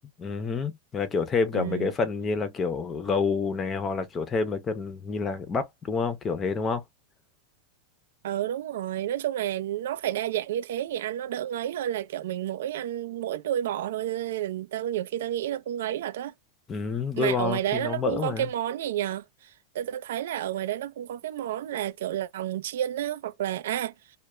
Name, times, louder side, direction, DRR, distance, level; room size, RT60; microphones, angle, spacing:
voice 1, 0.2-6.8 16.7-18.5, left 5 dB, 20° left, 0.5 m, -28 dB
voice 2, 1.5-1.9 8.2-16.3 17.2-19.2 19.7-23.9, right 12 dB, 80° right, 0.3 m, -30 dB
2.3 x 2.1 x 3.0 m
supercardioid pair, 155°, 0 cm